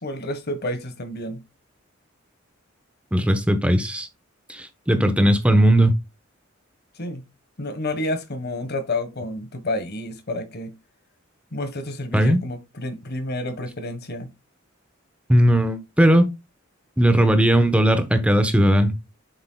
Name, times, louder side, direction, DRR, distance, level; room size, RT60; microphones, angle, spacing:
voice 1, 0.0-1.4 7.0-7.3 7.6-10.7 11.5-14.3, left 1 dB, 55° left, 1.4 m, -30 dB
voice 2, 3.1-4.1 4.5-5.9 12.1-12.4 15.3-16.3 17.0-18.9, right 1 dB, 5° right, 1.0 m, -18 dB
7.9 x 6.5 x 2.3 m
head